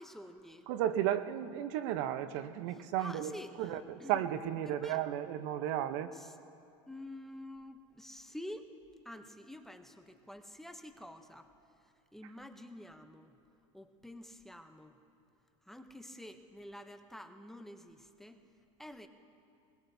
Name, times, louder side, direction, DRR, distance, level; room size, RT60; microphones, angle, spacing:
voice 1, 0.0-0.7 2.7-4.2 4.6-5.0 6.1-6.4 6.9-8.7 9.0-11.5 11.8-13.3 13.7-15.0 15.7-18.4 18.8-19.1, left 1 dB, ahead, 7 dB, 0.7 m, -49 dB
voice 2, 0.7-3.3 3.6-3.8 4.1-6.1, right 11 dB, 65° right, 11 dB, 0.8 m, -33 dB
22.0 x 21.0 x 2.7 m, 2.6 s
supercardioid pair, 130°, 16 cm